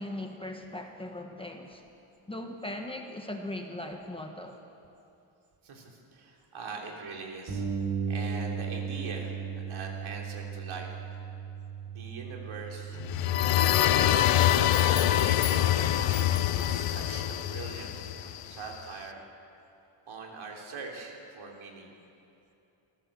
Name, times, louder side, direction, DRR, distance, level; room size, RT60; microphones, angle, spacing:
voice 1, 0.0-1.8 2.3-4.6, left 1 dB, 10° left, 3 dB, 1.2 m, -39 dB
voice 2, 5.6-7.7 8.1-10.9 11.9-13.0 13.8-19.2 20.1-21.9, right 4 dB, 70° right, 0 dB, 3.5 m, -42 dB
Bass guitar, 7.5-13.7, right 6 dB, 45° right, 4.1 m, -36 dB
sound 1, 13.0-18.7, left 12 dB, 90° left, 0.9 m, -25 dB
26.0 x 14.5 x 7.5 m, 2.8 s
wide cardioid pair, 160°, 50 cm